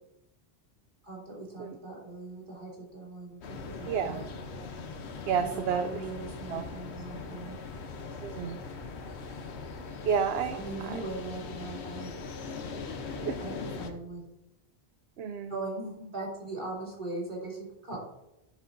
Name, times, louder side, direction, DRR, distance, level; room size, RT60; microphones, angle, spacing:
voice 1, 1.0-4.2 5.4-7.6 10.5-12.1 13.4-14.2 15.5-18.0, right 2 dB, 50° right, -4 dB, 3.3 m, -40 dB
sound 1, 3.4-13.9, left 4 dB, 85° left, 1.2 m, -40 dB
voice 2, 3.9-4.3 5.3-5.9 6.5-6.6 8.2-8.6 10.0-11.0 13.2-13.4 15.2-15.6, right 7 dB, 70° right, 8 dB, 0.8 m, -30 dB
11.5 x 7.3 x 2.6 m, 0.89 s
omnidirectional pair, 1.1 m